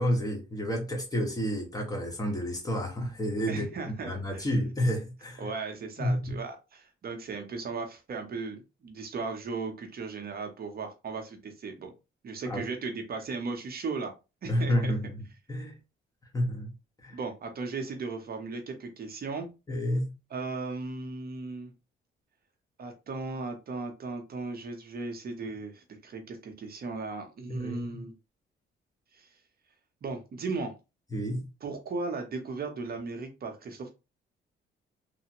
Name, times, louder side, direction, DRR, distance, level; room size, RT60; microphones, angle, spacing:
voice 1, 0.0-5.5 6.0-6.4 12.4-12.6 14.4-15.2 15.5-15.8 16.3-16.7 17.0-17.2 19.7-20.1 27.5-28.1 31.1-31.5, equal, 20° left, 1.2 m, -30 dB
voice 2, 3.5-4.5 5.4-11.9 12.2-14.1 14.4-14.9 17.1-19.5 20.3-21.7 22.8-28.1 29.1-29.3 30.0-30.7 31.6-33.9, right 4 dB, 50° right, 0.7 m, -36 dB
3.2 x 2.1 x 2.9 m
cardioid pair, 90°, 20 cm